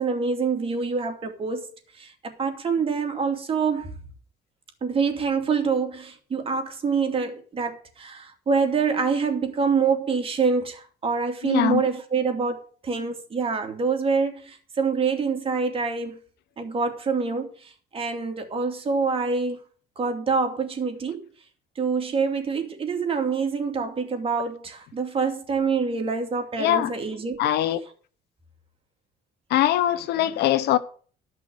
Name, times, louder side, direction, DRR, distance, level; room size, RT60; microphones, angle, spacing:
voice 1, 0.0-3.9 4.8-16.2 16.6-19.6 20.0-21.3 21.8-27.4, right 5 dB, 35° right, 2.8 m, -26 dB
voice 2, 11.4-11.8 26.6-26.9 27.4-27.8 29.5-30.8, left 12 dB, 75° left, 1.1 m, -22 dB
13.5 x 6.1 x 6.6 m
cardioid pair, 110°, 17 cm